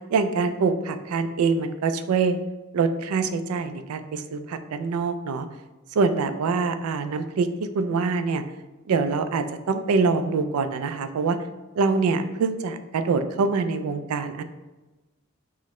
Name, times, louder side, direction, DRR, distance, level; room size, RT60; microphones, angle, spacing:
voice 1, 0.0-2.4 2.7-5.5 5.9-7.5 7.7-8.4 8.9-11.4 11.8-14.4, right 4 dB, 80° right, 10 dB, 0.3 m, -24 dB
6.0 x 2.0 x 3.0 m, 1.1 s
head